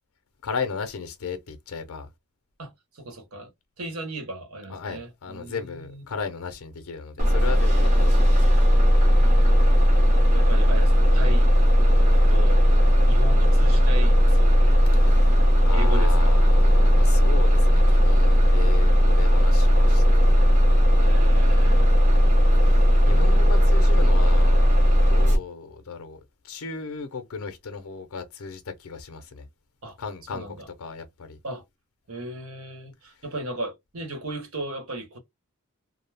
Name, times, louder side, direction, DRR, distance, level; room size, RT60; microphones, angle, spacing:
voice 1, 0.4-2.1 4.7-8.4 14.9-22.0 22.6-24.6 24.9-29.5 30.0-31.4, left 5 dB, 70° left, 0.5 m, -36 dB
voice 2, 2.6-3.5 3.8-6.0 9.2-9.7 10.3-11.5 12.1-12.7 13.1-14.8 15.7-16.4 21.0-21.9 29.8-30.0 30.3-30.7 31.4-31.6 32.1-35.2, right 1 dB, 65° right, 1.0 m, -36 dB
Bus, 7.2-25.4, equal, 30° right, 0.8 m, -17 dB
2.3 x 2.1 x 3.2 m
head